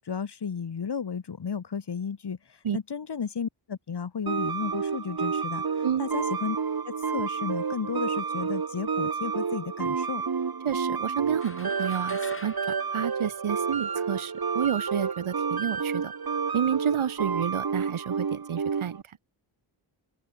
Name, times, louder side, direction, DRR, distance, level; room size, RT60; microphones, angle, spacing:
voice 1, 0.0-2.4 2.7-5.6 6.0-6.6 6.8-10.2, left 6 dB, 55° left, 5.3 m, -33 dB
sound 1, 4.3-19.0, right 5 dB, 45° right, 6.4 m, -30 dB
voice 2, 10.6-16.1 16.5-19.0, right 8 dB, 80° right, 3.4 m, -30 dB
sound 2, 11.3-14.0, left 3 dB, 25° left, 7.3 m, -45 dB
open air
wide cardioid pair, 155°, 49 cm